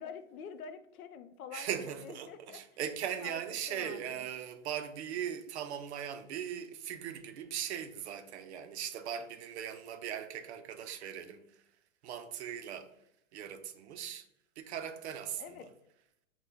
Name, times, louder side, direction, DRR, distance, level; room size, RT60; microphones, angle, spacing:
voice 1, 0.0-2.6 3.2-3.4 3.7-4.3 15.4-15.7, left 7 dB, 90° left, 0.6 m, -47 dB
voice 2, 1.5-11.4 12.0-12.9 13.3-14.3 14.6-15.7, right 9 dB, 55° right, 0.5 m, -39 dB
6.0 x 2.2 x 3.4 m
hypercardioid pair, 155°, 42 cm